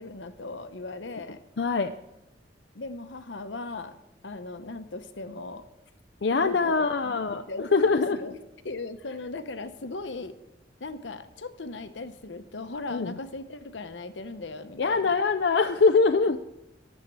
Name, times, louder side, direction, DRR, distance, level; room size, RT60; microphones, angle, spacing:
voice 1, 0.0-1.4 2.7-4.0 4.2-5.7 6.3-10.4 10.8-15.2 16.2-16.3, left 3 dB, 85° left, 10 dB, 0.9 m, -38 dB
voice 2, 1.6-1.9 6.2-7.4 7.7-8.2 12.9-13.1 14.8-16.4, left 4 dB, 65° left, 7 dB, 0.5 m, -23 dB
11.0 x 7.4 x 8.1 m, 0.89 s
head